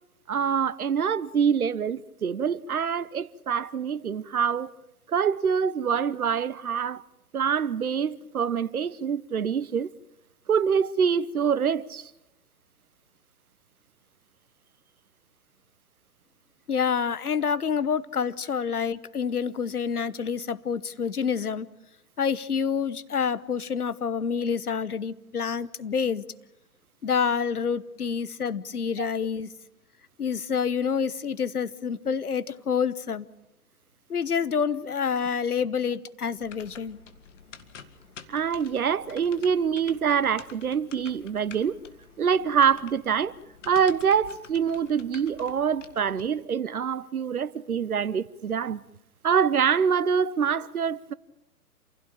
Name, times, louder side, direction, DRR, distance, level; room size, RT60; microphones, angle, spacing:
voice 1, 0.3-4.7 5.1-7.0 7.3-9.9 10.5-12.1 29.0-29.1 38.3-41.8 42.2-43.3 43.7-48.8 49.2-51.1, right 7 dB, 65° right, 1.0 m, -25 dB
voice 2, 16.7-21.7 22.2-26.2 27.0-29.5 30.2-33.3 34.1-37.0, left 6 dB, 70° left, 1.2 m, -27 dB
sound 1, 36.4-46.3, left 6 dB, 50° left, 2.0 m, -49 dB
28.0 x 16.5 x 8.8 m
figure-of-eight pair, 125°, 46 cm